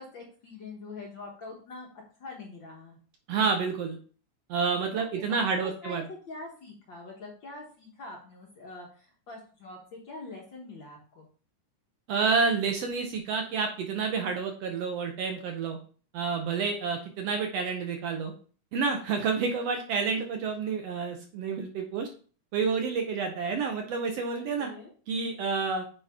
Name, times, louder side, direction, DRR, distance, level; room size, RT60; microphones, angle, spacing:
voice 1, 0.0-1.9 2.2-3.0 4.9-11.3 24.4-24.9, left 3 dB, 55° left, -1 dB, 1.5 m, -44 dB
voice 2, 3.3-4.0 4.5-6.0 12.1-15.8 16.1-18.3 18.7-22.1 22.5-24.7 25.1-25.8, right 5 dB, 70° right, 3 dB, 1.7 m, -29 dB
8.9 x 4.0 x 3.5 m, 0.41 s
omnidirectional pair, 3.4 m